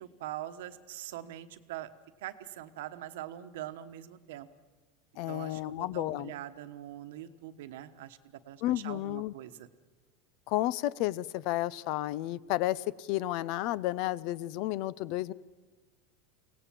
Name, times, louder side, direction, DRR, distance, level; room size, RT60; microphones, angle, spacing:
voice 1, 0.0-1.9 2.2-4.5 5.3-9.7, right 13 dB, 75° right, 10 dB, 1.2 m, -43 dB
voice 2, 5.2-6.3 8.6-9.3 10.5-15.3, left 15 dB, 55° left, 21 dB, 0.6 m, -32 dB
23.5 x 17.5 x 7.5 m, 1.4 s
supercardioid pair, 130°, 0 cm